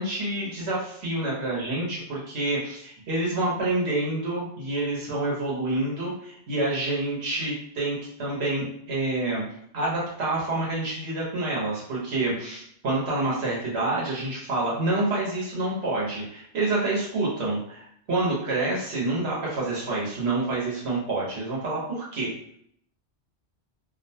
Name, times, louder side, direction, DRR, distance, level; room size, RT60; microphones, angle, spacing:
voice 1, 0.0-9.4 9.7-22.3, right 2 dB, 75° right, -5 dB, 1.2 m, -28 dB
2.7 x 2.1 x 2.7 m, 0.68 s
omnidirectional pair, 1.1 m